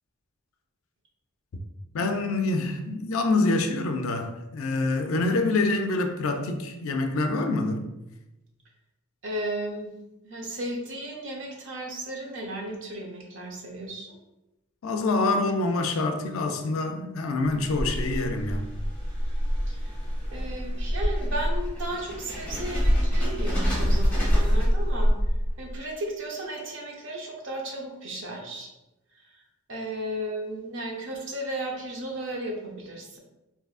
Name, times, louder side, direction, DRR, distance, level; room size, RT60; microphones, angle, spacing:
voice 1, 1.9-8.0 14.8-18.7, left 2 dB, 65° left, 0.4 m, -26 dB
voice 2, 9.2-9.9 10.2-14.2 19.7-19.9 20.3-25.1 25.6-28.7 29.7-33.2, right 1 dB, 55° right, 0.7 m, -34 dB
sound 1, 17.4-25.7, equal, 5° left, 0.8 m, -25 dB
3.5 x 2.7 x 2.4 m
head